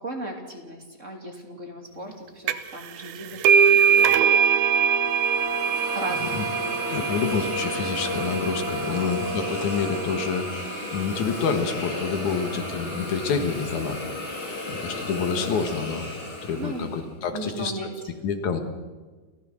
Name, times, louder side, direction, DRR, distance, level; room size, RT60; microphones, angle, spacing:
voice 1, 0.0-4.6 5.9-7.1 8.9-9.1 16.6-17.9 18.5-18.6, right 1 dB, 25° right, 1 dB, 2.9 m, -37 dB
sound 1, 2.5-2.8 3.1-10.4, right 7 dB, 85° right, 2.4 m, -23 dB
sound 2, 3.8-10.4, right 1 dB, 65° right, 5.6 m, -34 dB
Hiss, 5.0-17.1, left 2 dB, 40° left, 4.7 m, -35 dB
voice 2, 6.9-16.1 16.4-17.7 18.2-18.6, left 5 dB, 80° left, 7 dB, 3.1 m, -28 dB
29.5 x 15.0 x 6.5 m, 1.4 s
omnidirectional pair, 3.3 m